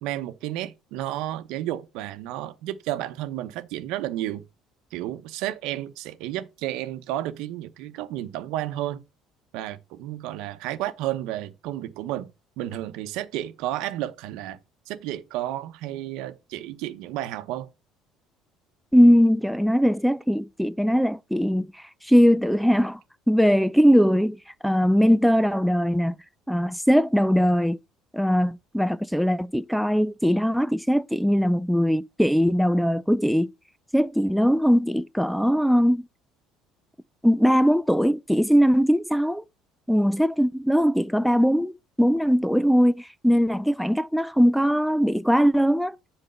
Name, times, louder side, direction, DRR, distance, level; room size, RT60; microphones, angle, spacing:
voice 1, 0.0-4.4 4.9-9.0 9.5-12.3 12.6-14.6 14.9-17.7, right 14 dB, 80° right, 0.8 m, -32 dB
voice 2, 18.9-21.7 22.0-23.0 23.3-26.1 26.5-27.8 28.1-33.5 33.9-36.0 37.2-39.4 39.9-41.7 42.0-46.0, equal, ahead, 0.3 m, -20 dB
7.9 x 4.2 x 5.4 m
cardioid pair, 125°, 0 cm